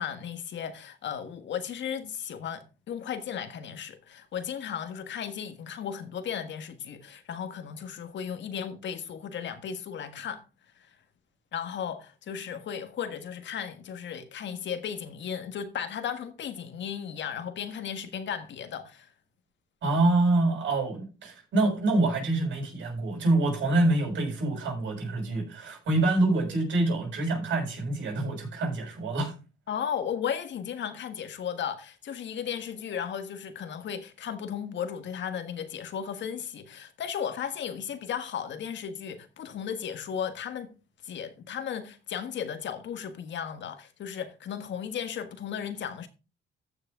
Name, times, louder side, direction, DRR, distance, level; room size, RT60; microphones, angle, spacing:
voice 1, 0.0-10.4 11.5-19.1 29.7-40.7 41.0-46.1, left 8 dB, 65° left, 1.6 m, -35 dB
voice 2, 19.8-29.3, right 2 dB, 70° right, 6.7 m, -26 dB
14.5 x 6.6 x 3.6 m
cardioid pair, 90°, 20 cm